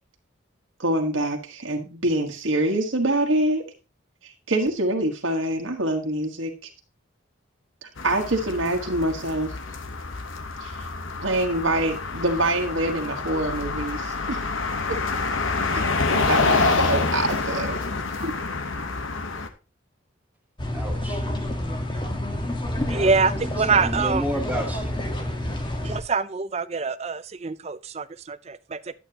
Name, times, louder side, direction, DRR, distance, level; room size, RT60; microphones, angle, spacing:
voice 1, 0.8-3.6 4.2-6.5 8.0-9.5 10.6-10.9 11.2-14.4 15.7-15.8 16.1-17.8 18.2-18.3, right 1 dB, 75° right, 1.5 m, -25 dB
sound 1, 8.0-19.5, left 3 dB, 75° left, 1.1 m, -27 dB
sound 2, 20.6-26.0, left 1 dB, 25° left, 1.3 m, -28 dB
voice 2, 20.7-21.3 22.7-23.1 23.4-24.9, equal, 10° right, 1.2 m, -31 dB
voice 3, 22.9-24.2 25.8-28.9, right 4 dB, 30° right, 0.4 m, -25 dB
11.0 x 8.4 x 2.9 m
head